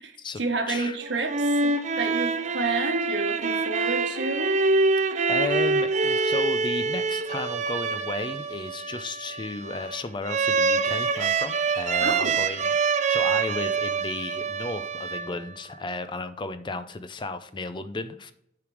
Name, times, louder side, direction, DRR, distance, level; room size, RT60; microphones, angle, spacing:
voice 1, 0.0-4.5 12.0-12.4, right 3 dB, 70° right, 5 dB, 1.3 m, -30 dB
voice 2, 0.7-1.0 5.0-12.7 13.1-18.3, left 3 dB, 25° left, 11 dB, 0.4 m, -34 dB
sound 1, 1.0-15.7, right 4 dB, 40° right, 0.5 m, -26 dB
7.9 x 5.1 x 4.8 m, 0.76 s
head